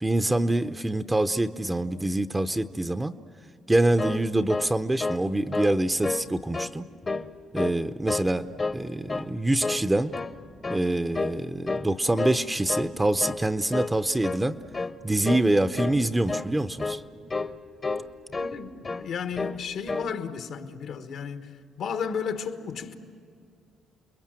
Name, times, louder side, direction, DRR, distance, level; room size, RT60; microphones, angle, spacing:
voice 1, 0.0-3.1 3.7-6.8 7.5-8.5 8.7-10.1 10.7-14.6 15.0-17.0, right 1 dB, 15° right, 0.7 m, -25 dB
sound 1, 4.0-5.3 5.5-5.8 6.0-6.7 7.0-7.8 8.1-8.8 9.1-9.3 9.6-10.4 10.6-10.9 11.1-11.4 11.7-12.4 12.7-12.9 13.2-13.4 13.7-14.0 14.2-14.5 14.7-15.0 15.2-15.5 15.7-16.0 16.3-16.5 16.8-17.0 17.3-17.5 17.8-18.6 18.8-19.1 19.3-19.6 19.9-20.1, left 3 dB, 30° left, 0.9 m, -30 dB
voice 2, 18.3-22.9, left 6 dB, 75° left, 1.4 m, -33 dB
30.0 x 21.5 x 7.6 m
cardioid pair, 90°, 0 cm